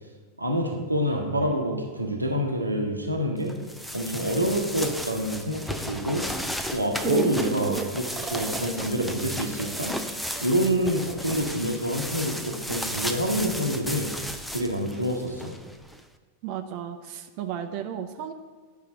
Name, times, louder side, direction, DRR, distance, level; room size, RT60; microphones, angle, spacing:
voice 1, 0.4-3.6 3.9-6.3 6.7-9.9 10.4-14.1 14.5-15.5, equal, 85° right, 0 dB, 1.0 m, -27 dB
sound 1, 3.5-16.0, equal, 5° left, 0.6 m, -35 dB
sound 2, 6.8-11.3 11.8-11.9, right 5 dB, 25° right, 0.9 m, -33 dB
voice 2, 16.4-18.3, right 9 dB, 45° right, 7 dB, 0.6 m, -34 dB
10.5 x 5.6 x 3.8 m, 1.4 s
figure-of-eight pair, 90°, 0 cm